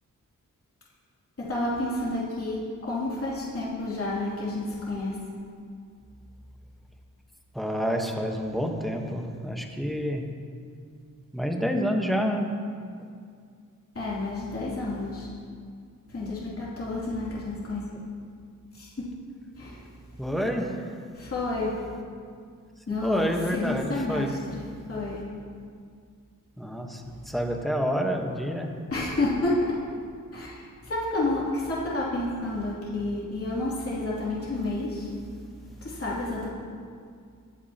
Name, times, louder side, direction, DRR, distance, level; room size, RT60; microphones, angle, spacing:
voice 1, 1.4-5.2 13.9-15.3 16.1-18.0 18.7-18.9 19.5-19.8 21.1-21.8 22.9-24.6 24.9-25.2 28.9-29.7 30.3-35.1 35.8-36.5, left 2 dB, 40° left, -7 dB, 2.7 m, -30 dB
voice 2, 7.5-10.2 11.3-12.5 20.2-20.8 23.0-24.4 26.6-28.7, equal, ahead, 2 dB, 1.1 m, -28 dB
22.5 x 8.4 x 2.8 m, 2.2 s
wide cardioid pair, 135°, 34 cm